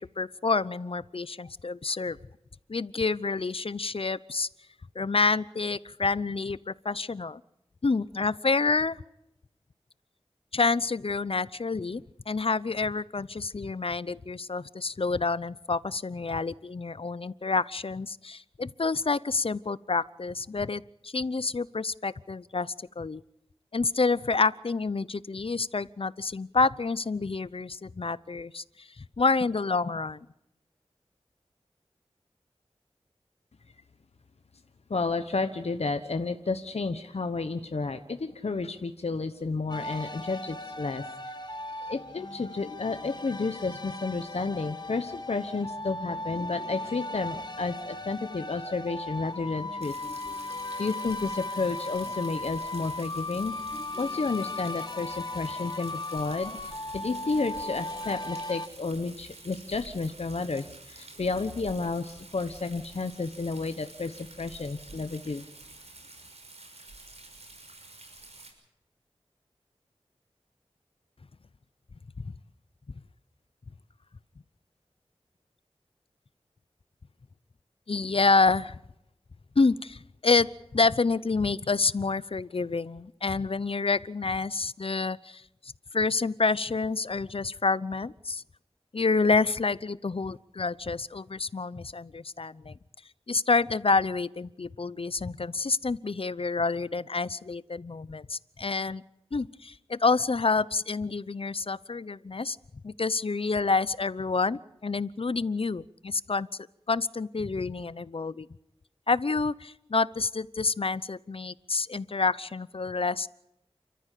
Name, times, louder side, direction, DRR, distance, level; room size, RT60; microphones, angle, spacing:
voice 1, 0.0-2.2 2.7-4.5 4.9-7.4 7.8-9.0 10.5-23.2 23.7-30.3 77.9-78.8 79.6-88.4 88.9-92.8 93.3-99.0 99.3-102.6 102.8-106.5 106.9-108.5 109.1-113.3, left 4 dB, 60° left, 18 dB, 0.8 m, -28 dB
voice 2, 34.9-41.5 41.8-49.9 50.8-53.7 54.0-65.5, left 3 dB, 75° left, 8 dB, 1.2 m, -31 dB
sound 1, 39.7-58.7, left 2 dB, 40° left, 1.8 m, -37 dB
Rain, 49.8-68.5, right 2 dB, 75° right, 6.0 m, -49 dB
29.5 x 14.0 x 8.4 m, 0.88 s
wide cardioid pair, 50°, 11 cm